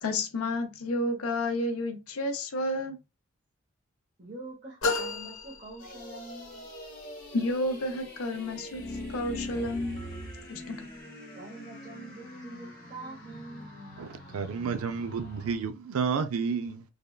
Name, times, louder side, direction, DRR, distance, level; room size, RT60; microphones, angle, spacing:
voice 1, 0.0-3.0 7.3-8.8 9.1-10.0 10.5-10.9, left 1 dB, 90° left, 0.6 m, -30 dB
voice 2, 4.2-6.7 11.3-13.7, right 2 dB, 35° right, 0.8 m, -45 dB
sound 1, 4.8-6.5, left 3 dB, 70° left, 1.0 m, -32 dB
sound 2, 5.8-15.6, left 1 dB, 40° left, 1.1 m, -46 dB
sound 3, 8.7-10.5, left 1 dB, 25° left, 0.5 m, -38 dB
voice 3, 14.0-16.8, right 5 dB, 85° right, 0.4 m, -31 dB
3.4 x 2.2 x 2.2 m
head